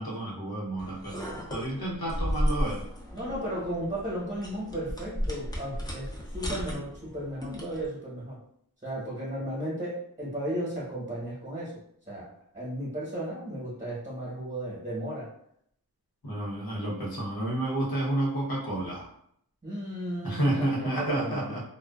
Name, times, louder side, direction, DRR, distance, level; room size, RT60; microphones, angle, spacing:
voice 1, 0.0-2.8 16.2-19.1 20.2-21.6, right 1 dB, 85° left, -4 dB, 0.9 m, -30 dB
sound 1, 0.8-7.9, equal, 10° left, 0.5 m, -34 dB
voice 2, 3.1-8.4 8.8-11.7 12.1-12.3 12.5-15.3 19.6-21.5, right 1 dB, 20° right, -8 dB, 1.0 m, -35 dB
2.4 x 2.2 x 2.3 m, 0.69 s
wide cardioid pair, 70°, 36 cm